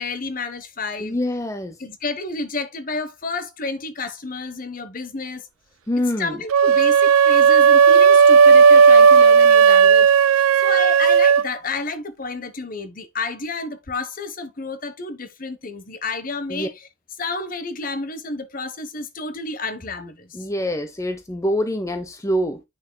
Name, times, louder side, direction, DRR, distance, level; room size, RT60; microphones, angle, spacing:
voice 1, 0.0-1.2 1.8-5.5 6.2-16.7 17.2-20.4, left 3 dB, 40° left, 1.1 m, -30 dB
voice 2, 1.0-1.8 5.9-6.4 16.5-16.7 20.3-22.6, equal, 15° left, 0.7 m, -25 dB
sound 1, 6.5-11.5, right 6 dB, 85° right, 0.4 m, -13 dB
8.8 x 6.4 x 2.2 m
head